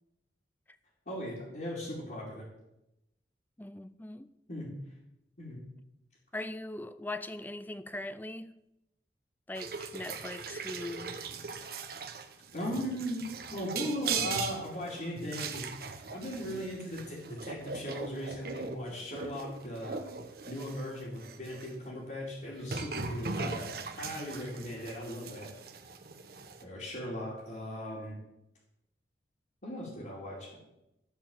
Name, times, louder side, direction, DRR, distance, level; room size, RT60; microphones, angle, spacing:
voice 1, 1.1-2.4 4.5-4.7 5.4-5.6 12.5-13.2 13.5-20.0 20.5-25.5 26.6-28.2 29.6-30.5, equal, 50° left, 2.7 m, -38 dB
voice 2, 3.6-4.3 6.3-8.5 9.5-11.2, left 2 dB, 10° left, 0.4 m, -40 dB
sound 1, 9.5-21.7 22.6-26.6, right 5 dB, 55° right, 0.9 m, -40 dB
13.5 x 4.6 x 7.2 m
head